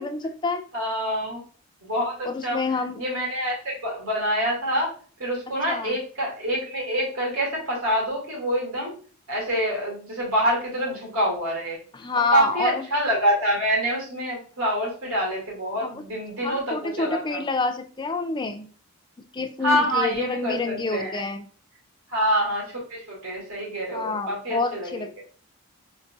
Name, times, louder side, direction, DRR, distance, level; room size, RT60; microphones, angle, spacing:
voice 1, 0.0-0.6 2.2-3.0 5.7-6.0 12.0-12.9 15.8-15.9 16.4-18.7 19.3-21.5 23.9-25.2, left 4 dB, 20° left, 7 dB, 0.3 m, -28 dB
voice 2, 0.7-1.4 1.8-2.6 3.0-4.9 5.2-8.9 9.3-11.8 12.3-17.4 19.6-21.2 22.1-25.2, equal, 70° right, -3 dB, 2.1 m, -26 dB
3.9 x 3.9 x 2.3 m, 0.41 s
head